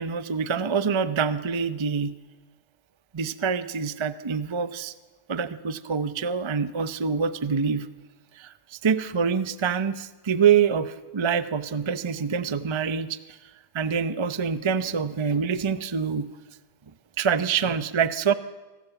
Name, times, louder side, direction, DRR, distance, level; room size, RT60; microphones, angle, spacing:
voice 1, 0.0-2.1 3.1-4.9 5.3-7.9 8.3-13.4 13.7-16.3 17.2-18.3, right 6 dB, 30° right, 12 dB, 0.5 m, -25 dB
26.5 x 18.0 x 8.1 m, 1.3 s
omnidirectional pair, 1.6 m